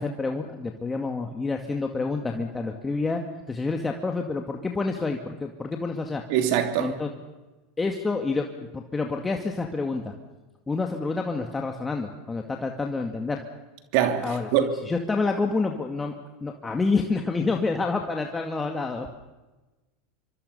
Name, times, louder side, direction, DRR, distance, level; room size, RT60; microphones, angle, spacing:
voice 1, 0.0-3.2 3.5-6.2 6.8-7.1 7.8-8.5 8.7-10.1 10.7-13.4 14.2-14.5 14.8-16.2 16.4-19.1, left 3 dB, 15° left, 2.1 m, -28 dB
voice 2, 6.3-6.9 13.9-14.7, right 10 dB, 60° right, 3.1 m, -23 dB
26.0 x 25.0 x 5.6 m
hypercardioid pair, 90°, 0 cm